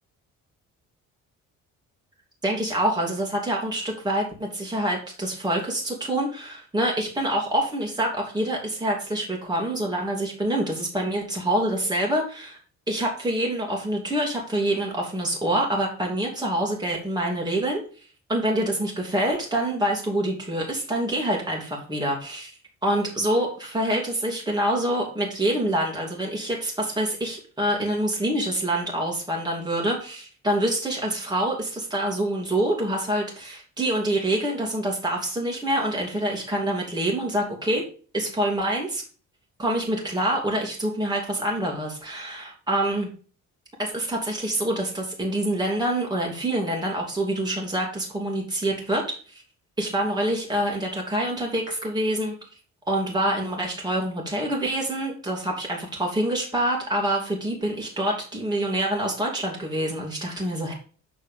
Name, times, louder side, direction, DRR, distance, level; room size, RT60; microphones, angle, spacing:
voice 1, 2.4-12.6 12.9-17.8 18.3-22.5 22.8-37.8 38.1-39.0 39.6-43.1 43.8-49.0 49.3-49.4 49.8-52.3 52.9-60.7, right 1 dB, 15° right, -2 dB, 2.6 m, -26 dB
7.1 x 4.4 x 5.1 m, 0.39 s
cardioid pair, 90°, 30 cm